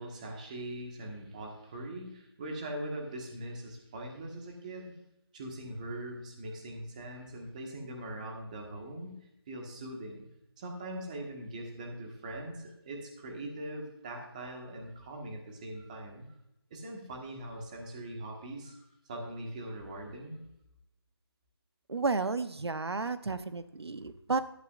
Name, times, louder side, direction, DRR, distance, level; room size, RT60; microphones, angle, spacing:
voice 1, 0.0-5.0 5.3-9.2 9.5-10.3 10.6-16.3 16.7-20.4, right 1 dB, 20° right, 1 dB, 1.4 m, -41 dB
voice 2, 21.9-24.4, right 4 dB, 90° right, 11 dB, 0.9 m, -32 dB
13.5 x 12.0 x 2.5 m, 0.84 s
figure-of-eight pair, 170°, 13 cm